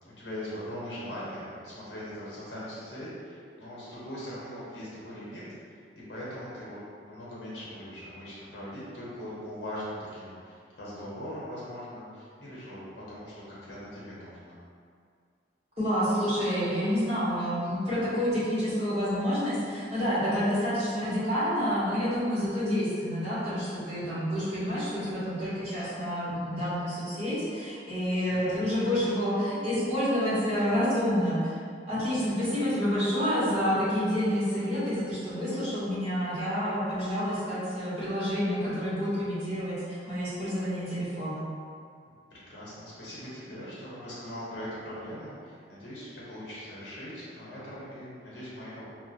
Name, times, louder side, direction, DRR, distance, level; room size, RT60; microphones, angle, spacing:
voice 1, 0.0-5.4 6.1-12.8 13.1-14.6 28.3-28.6 42.5-48.8, equal, 80° left, -8 dB, 0.9 m, -40 dB
voice 2, 15.8-31.5 31.9-41.4, equal, 35° right, -12 dB, 0.9 m, -28 dB
2.1 x 2.1 x 2.7 m, 2.2 s
head